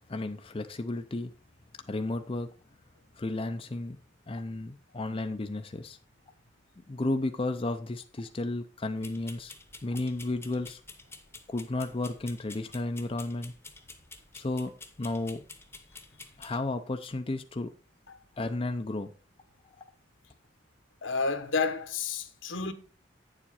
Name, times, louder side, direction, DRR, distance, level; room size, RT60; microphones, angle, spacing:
voice 1, 0.1-1.3 1.9-2.5 3.1-4.0 4.3-6.0 6.8-9.5 9.8-10.8 11.5-13.5 14.3-14.7 15.0-15.4 16.4-17.7 18.4-19.1, left 2 dB, 30° left, 0.5 m, -33 dB
sound 1, 9.0-16.6, left 4 dB, 10° left, 0.9 m, -50 dB
voice 2, 21.0-22.7, left 4 dB, 75° left, 1.2 m, -30 dB
9.5 x 7.3 x 4.2 m
head